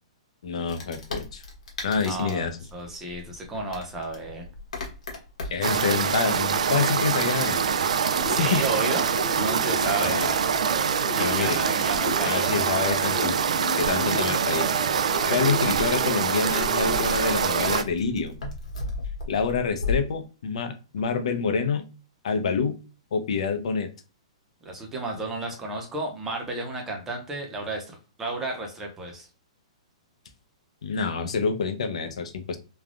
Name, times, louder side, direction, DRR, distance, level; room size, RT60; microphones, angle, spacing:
voice 1, 0.4-1.4 1.8-2.6 5.5-7.6 8.4-8.6 9.8-10.3 11.2-11.6 12.2-13.4 13.8-14.7 15.3-18.3 19.3-21.8 22.2-22.8 23.1-23.9 30.8-32.6, left 5 dB, 65° left, 7 dB, 0.6 m, -27 dB
Wood, 0.7-20.0, left 3 dB, 85° left, 1.2 m, -39 dB
voice 2, 2.0-4.5 8.3-9.1 9.3-10.2 11.1-12.5 15.2-15.4 24.6-29.3, right 2 dB, 10° right, 1 dB, 0.5 m, -32 dB
sound 1, 5.6-17.8, right 7 dB, 85° right, 0.3 m, -25 dB
sound 2, 8.1-17.7, left 1 dB, 20° left, 1.1 m, -36 dB
3.3 x 2.2 x 2.4 m, 0.34 s
hypercardioid pair, 175°, 4 cm